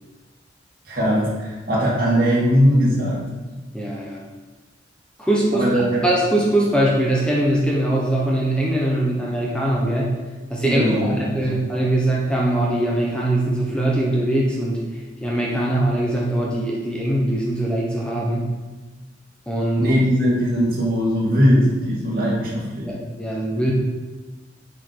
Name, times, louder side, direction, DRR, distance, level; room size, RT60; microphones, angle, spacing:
voice 1, 0.8-3.3 5.5-6.0 10.6-11.5 19.8-22.9, equal, 50° right, -5 dB, 2.4 m, -19 dB
voice 2, 3.7-4.2 5.2-5.7 6.0-10.2 10.5-14.8 15.2-18.5 19.5-19.9 22.8-23.7, right 1 dB, 5° left, -4 dB, 1.0 m, -22 dB
8.0 x 5.1 x 4.7 m, 1.2 s
head